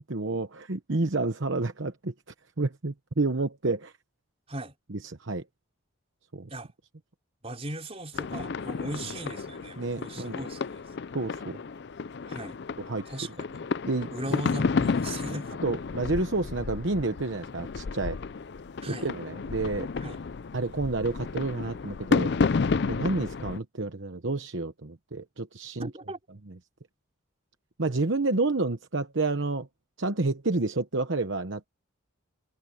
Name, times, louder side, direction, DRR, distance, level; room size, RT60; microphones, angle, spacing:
voice 1, 0.1-2.1 2.6-3.9 4.9-5.4 6.3-6.5 9.8-10.4 11.1-11.6 12.8-13.1 13.9-14.1 15.3-18.2 18.8-19.9 20.5-22.3 22.8-25.9 26.5-26.6 27.8-29.7 30.0-31.7, right 3 dB, 60° right, 1.0 m, -29 dB
voice 2, 7.4-10.9 12.3-12.6 13.1-13.7 14.1-15.5 18.8-19.1 20.0-20.2 25.8-26.2, right 1 dB, 30° right, 5.0 m, -38 dB
sound 1, 8.1-23.6, left 4 dB, 55° left, 0.4 m, -31 dB
head